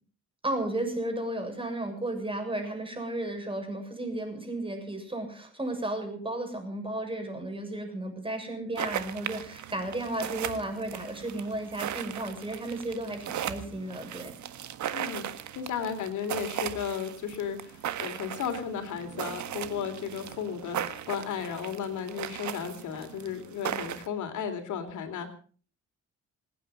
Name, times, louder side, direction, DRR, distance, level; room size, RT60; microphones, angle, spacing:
voice 1, 0.4-14.4, right 1 dB, 15° right, 5 dB, 6.9 m, -34 dB
sound 1, 8.8-24.1, right 10 dB, 70° right, 1.6 m, -37 dB
voice 2, 14.9-15.3 15.5-25.3, left 7 dB, 75° left, 7 dB, 3.4 m, -34 dB
27.0 x 9.7 x 5.5 m, 0.42 s
cardioid pair, 90°, 30 cm